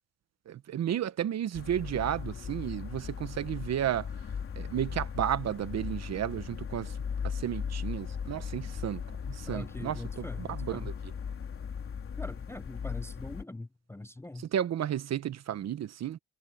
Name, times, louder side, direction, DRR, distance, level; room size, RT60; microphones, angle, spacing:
voice 1, 0.5-4.1 4.6-6.9 7.2-10.9 14.4-16.2, right 10 dB, 55° right, 1.2 m, -33 dB
sound 1, 1.5-13.4, left 7 dB, 40° left, 3.9 m, -38 dB
voice 2, 9.5-10.9 12.2-14.5, left 2 dB, 10° left, 0.6 m, -42 dB
cardioid pair, 105°, 32 cm